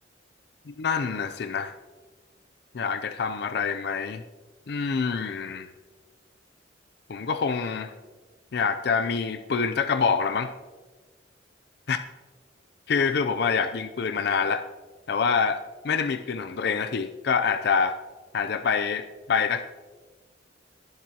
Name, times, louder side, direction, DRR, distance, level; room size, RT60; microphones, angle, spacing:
voice 1, 0.7-1.8 2.7-4.2 4.7-5.7 7.1-7.9 8.5-10.5 11.9-12.0 12.9-14.6 15.1-15.6 15.8-17.9 18.3-19.7, left 5 dB, 60° left, 9 dB, 0.4 m, -26 dB
20.0 x 7.5 x 2.9 m, 1.3 s
head